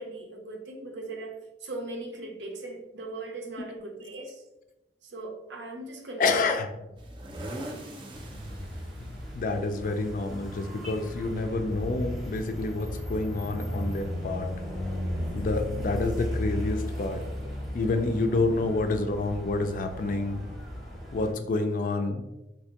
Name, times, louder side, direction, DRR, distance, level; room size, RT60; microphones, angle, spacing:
voice 1, 0.0-4.4 5.0-6.4 17.4-17.5 22.0-22.1, right 2 dB, 80° right, 2 dB, 0.6 m, -39 dB
voice 2, 6.2-6.7 9.3-14.5 15.3-17.2 17.7-20.4 21.1-22.2, left 3 dB, 50° left, 7 dB, 0.3 m, -28 dB
sound 1, 7.0-12.0, right 1 dB, 25° right, 0.4 m, -42 dB
sound 2, 8.1-21.3, left 1 dB, ahead, 0.7 m, -36 dB
3.3 x 2.6 x 2.8 m, 0.95 s
head